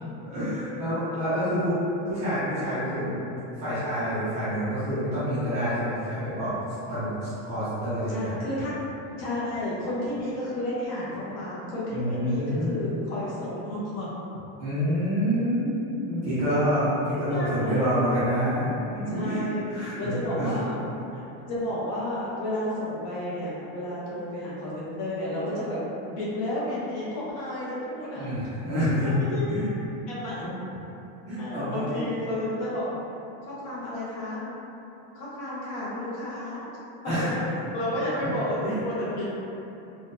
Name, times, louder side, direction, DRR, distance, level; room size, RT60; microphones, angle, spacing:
voice 1, 0.2-1.8 2.1-3.2 3.6-6.5 6.9-8.3 11.9-13.0 14.6-20.6 28.2-29.2 29.5-29.7 30.4-30.5 31.3-31.8 37.0-37.3 38.6-38.7, equal, 20° right, -14 dB, 0.5 m, -27 dB
voice 2, 8.1-8.7 9.2-14.3 17.1-18.0 19.1-20.8 21.1-21.2 21.5-25.8 26.1-28.3 29.0-29.8 30.1-30.4 31.4-32.9 33.5-34.4 35.1-36.7 37.0-37.1 37.7-39.3, left 1 dB, 40° left, -8 dB, 0.7 m, -31 dB
3.7 x 2.2 x 2.5 m, 2.9 s
supercardioid pair, 175°, 40 cm